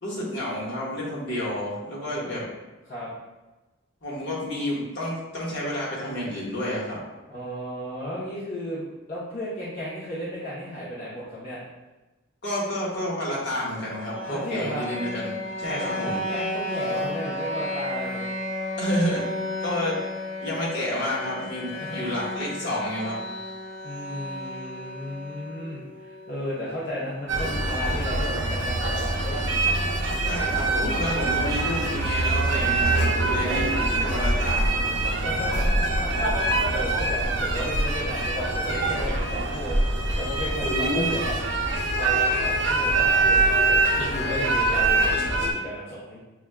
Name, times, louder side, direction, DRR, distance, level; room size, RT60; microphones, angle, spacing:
voice 1, 0.0-2.5 4.0-7.0 12.4-15.3 15.6-16.2 18.8-19.2 19.6-20.0 20.4-23.2 30.2-34.7 40.6-41.1, left 1 dB, 60° left, -6 dB, 1.2 m, -30 dB
voice 2, 2.0-2.4 2.8-3.1 7.3-11.6 14.3-14.9 15.7-18.3 21.7-22.1 23.8-29.4 33.3-34.0 35.2-36.3 36.7-41.4 41.9-46.2, equal, 45° left, -8 dB, 0.7 m, -34 dB
sound 1, 13.7-27.7, left 1 dB, 90° left, 0.5 m, -34 dB
sound 2, 27.3-45.5, right 2 dB, 65° right, 0.5 m, -24 dB
5.9 x 2.3 x 2.2 m, 1.1 s
head